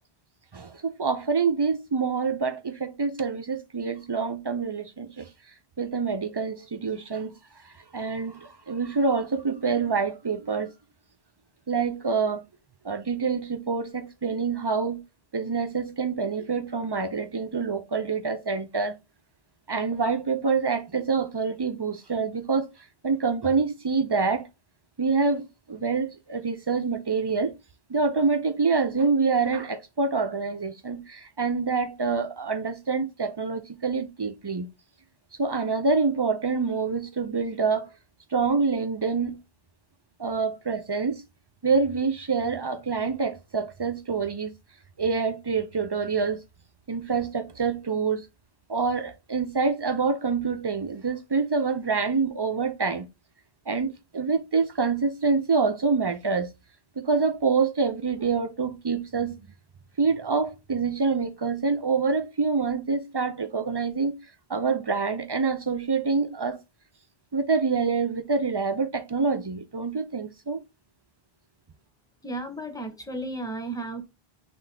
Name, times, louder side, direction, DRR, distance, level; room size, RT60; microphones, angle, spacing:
voice 1, 0.5-5.3 5.8-7.3 7.6-10.7 11.7-12.4 12.8-15.0 15.3-18.9 19.7-22.7 23.0-24.5 25.0-27.6 27.9-34.7 35.4-37.9 38.3-39.4 40.2-41.2 41.6-44.5 45.0-46.4 46.9-48.3 48.7-53.1 53.7-56.5 57.0-59.4 60.0-64.1 64.5-66.6 67.3-70.6, right 4 dB, 40° right, 0.3 m, -26 dB
voice 2, 72.2-74.0, right 2 dB, 5° left, 0.8 m, -34 dB
5.7 x 2.5 x 3.3 m
omnidirectional pair, 1.0 m